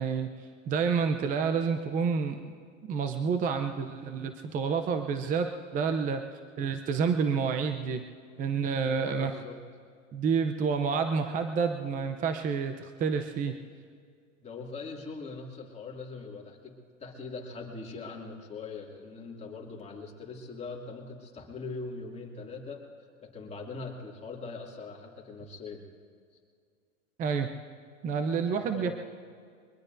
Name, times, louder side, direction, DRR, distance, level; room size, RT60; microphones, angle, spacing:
voice 1, 0.0-2.6 2.8-8.1 8.4-9.3 10.1-13.6 27.2-27.5 28.0-28.9, right 5 dB, 20° right, 8 dB, 0.6 m, -29 dB
voice 2, 8.9-9.6 14.4-16.7 17.0-22.8 23.2-25.8 28.5-28.9, left 4 dB, 15° left, -1 dB, 2.4 m, -41 dB
23.0 x 21.5 x 2.6 m, 2.1 s
hypercardioid pair, 120°, 38 cm